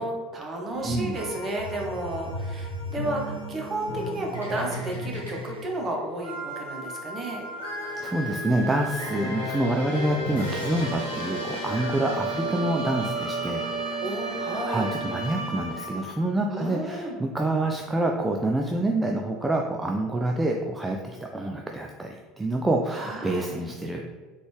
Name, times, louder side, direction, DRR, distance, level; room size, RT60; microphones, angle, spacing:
voice 1, 0.0-7.4 14.0-14.8 16.5-17.2 22.9-23.6, right 2 dB, 30° right, 0 dB, 1.0 m, -32 dB
sound 1, 0.7-16.1, right 1 dB, 80° left, 0.9 m, -33 dB
voice 2, 0.8-1.1 8.0-13.6 14.3-14.4 14.7-21.0 21.3-24.2, right 1 dB, 10° right, 1 dB, 0.4 m, -27 dB
3.9 x 3.4 x 3.3 m, 1.3 s
figure-of-eight pair, 70°, 0 cm